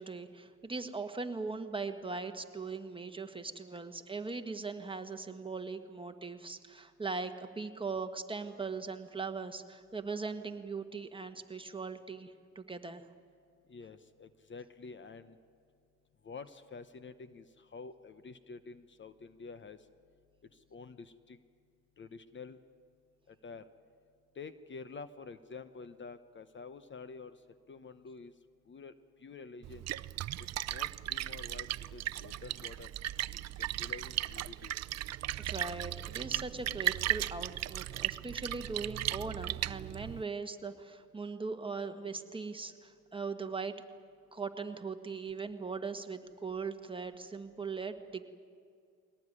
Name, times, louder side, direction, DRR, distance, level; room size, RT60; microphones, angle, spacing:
voice 1, 0.0-13.1 35.4-43.7 44.3-48.2, right 4 dB, 15° right, 7 dB, 1.6 m, -40 dB
voice 2, 13.7-15.4 16.2-19.8 20.7-21.4 22.0-22.6 23.3-23.7 24.3-27.4 27.7-28.3 28.7-28.9 29.2-29.9 30.7-32.9 33.6-34.7, left 4 dB, 40° left, 12 dB, 1.0 m, -48 dB
Splash splatter, 29.6-40.2, right 13 dB, 60° right, 0.6 m, -36 dB
22.5 x 18.5 x 9.9 m, 2.3 s
cardioid pair, 90°, 30 cm